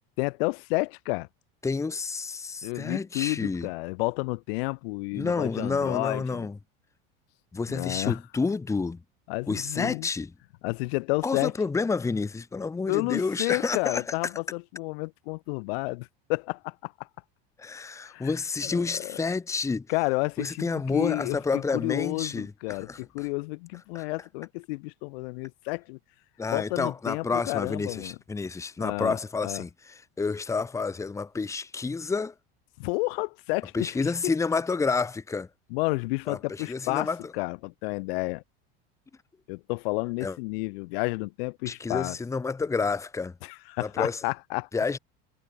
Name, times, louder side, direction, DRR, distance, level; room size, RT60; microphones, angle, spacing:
voice 1, 0.2-1.3 2.6-6.5 7.7-8.2 9.3-10.1 10.6-11.5 12.9-16.9 18.0-18.3 18.6-19.2 19.9-21.4 21.7-26.0 26.5-28.2 28.8-29.2 29.4-29.6 32.8-34.3 35.7-37.1 37.3-38.4 39.5-42.2 43.4-44.7, left 28 dB, 75° left, 1.6 m, -31 dB
voice 2, 1.6-3.7 5.1-6.6 7.5-9.0 9.5-10.3 11.2-14.0 17.6-19.9 20.4-23.0 23.9-24.0 26.4-32.3 33.7-35.5 36.3-37.2 40.2-40.4 41.7-43.3 43.8-44.2 44.7-45.0, left 4 dB, 10° left, 1.1 m, -29 dB
supercardioid pair, 140°, 30 cm